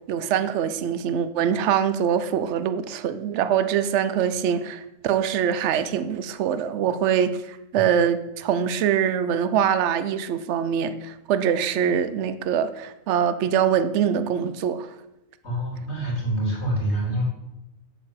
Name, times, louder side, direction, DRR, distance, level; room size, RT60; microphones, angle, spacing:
voice 1, 0.1-14.9, right 8 dB, 60° right, 0.9 m, -24 dB
voice 2, 15.4-17.2, right 1 dB, 50° left, 3.9 m, -26 dB
8.3 x 7.3 x 7.4 m
omnidirectional pair, 1.4 m